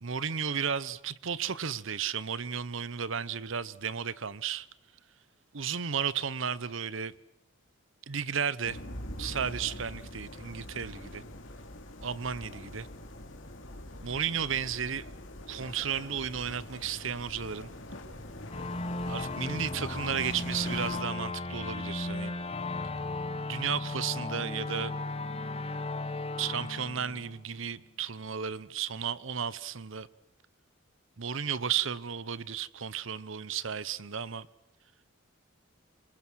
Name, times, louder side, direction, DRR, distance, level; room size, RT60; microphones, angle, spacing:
voice 1, 0.0-4.7 5.5-7.1 8.1-8.8 9.2-11.2 12.0-12.9 14.0-15.1 15.5-17.7 19.1-22.3 23.5-25.0 26.4-30.1 31.2-34.5, right 7 dB, 70° right, 0.9 m, -33 dB
sound 1, 8.6-21.0, left 1 dB, 65° left, 3.1 m, -44 dB
sound 2, 18.5-27.8, left 2 dB, 30° left, 1.1 m, -36 dB
27.0 x 24.5 x 6.3 m
head